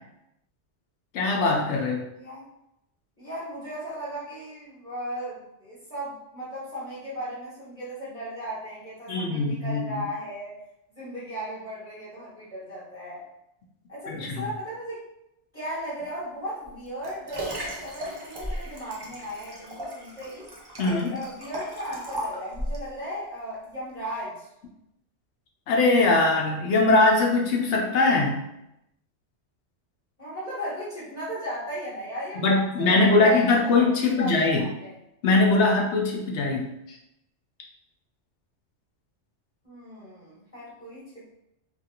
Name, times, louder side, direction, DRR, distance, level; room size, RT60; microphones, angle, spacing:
voice 1, 1.1-2.0 9.1-10.0 14.1-14.4 20.8-21.1 25.7-28.4 32.4-34.7 35.2-37.0, left 3 dB, 75° left, 0 dB, 0.9 m, -21 dB
voice 2, 3.2-10.6 10.9-13.2 13.9-15.0 15.5-20.5 20.9-24.5 30.2-34.9 39.6-41.3, equal, 10° left, -12 dB, 1.2 m, -36 dB
Liquid, 16.6-22.9 23.5-23.6, equal, 35° right, 0.4 m, -36 dB
3.1 x 2.5 x 2.8 m, 0.84 s
omnidirectional pair, 1.2 m